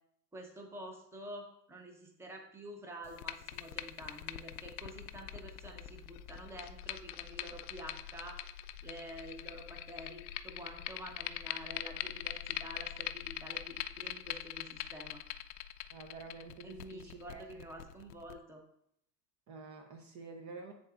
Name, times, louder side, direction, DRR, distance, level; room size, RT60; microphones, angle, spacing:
voice 1, 0.3-8.4 8.8-15.2 16.6-18.6, right 1 dB, 5° right, 2 dB, 0.9 m, -48 dB
sound 1, 3.0-18.3, left 13 dB, 65° left, 0.5 m, -43 dB
voice 2, 15.9-17.6 19.5-20.7, right 4 dB, 35° right, 5 dB, 0.8 m, -49 dB
9.8 x 4.0 x 2.5 m, 0.72 s
supercardioid pair, 115°, 49 cm